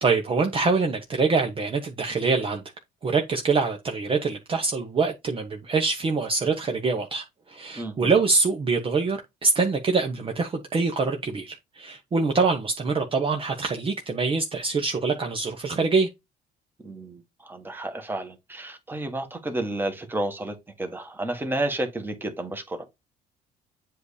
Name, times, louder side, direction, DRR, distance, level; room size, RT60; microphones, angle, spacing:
voice 1, 0.0-2.6 3.0-16.1, right 4 dB, 30° right, 0.9 m, -24 dB
voice 2, 7.8-8.1 16.8-22.8, right 1 dB, 10° right, 1.4 m, -31 dB
7.8 x 2.7 x 4.9 m
cardioid pair, 110°, 17 cm